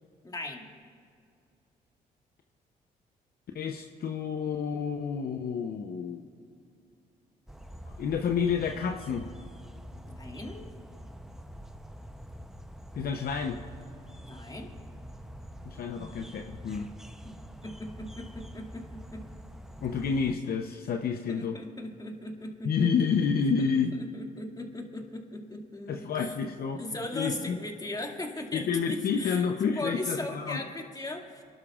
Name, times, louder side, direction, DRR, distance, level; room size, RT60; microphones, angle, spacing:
voice 1, 0.2-0.7 10.1-10.7 14.3-14.7 16.0-16.1 17.2-17.3 17.6-19.3 21.3-22.9 24.0-26.3 26.8-29.4 29.7-31.4, left 2 dB, 20° left, 1 dB, 2.2 m, -38 dB
voice 2, 3.5-6.3 8.0-9.2 12.9-13.6 15.6-16.9 19.8-21.6 22.6-23.9 25.9-26.8 27.1-27.6 28.5-30.6, left 6 dB, 60° left, 4 dB, 0.8 m, -29 dB
sound 1, 7.5-20.4, equal, 5° right, 0.7 m, -46 dB
27.0 x 12.0 x 2.4 m, 2.4 s
supercardioid pair, 65°, 17 cm